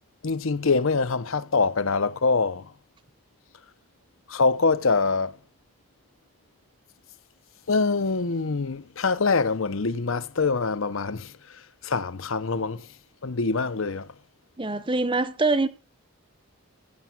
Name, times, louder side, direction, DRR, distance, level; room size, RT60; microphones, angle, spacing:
voice 1, 0.2-2.7 4.3-5.4 7.7-12.9 13.2-14.1, left 4 dB, 65° left, 0.7 m, -25 dB
voice 2, 14.6-15.7, right 3 dB, 20° right, 0.8 m, -24 dB
15.5 x 7.0 x 6.0 m
head